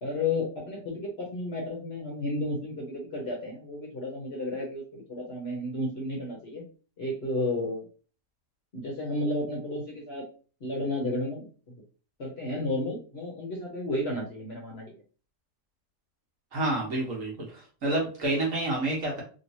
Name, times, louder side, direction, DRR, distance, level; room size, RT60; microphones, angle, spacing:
voice 1, 0.0-6.6 7.0-7.8 8.7-10.3 10.6-11.5 12.2-15.0, left 1 dB, 50° left, -1 dB, 0.9 m, -32 dB
voice 2, 16.5-19.2, right 2 dB, 55° right, -2 dB, 1.4 m, -29 dB
3.1 x 2.9 x 2.7 m, 0.38 s
omnidirectional pair, 1.7 m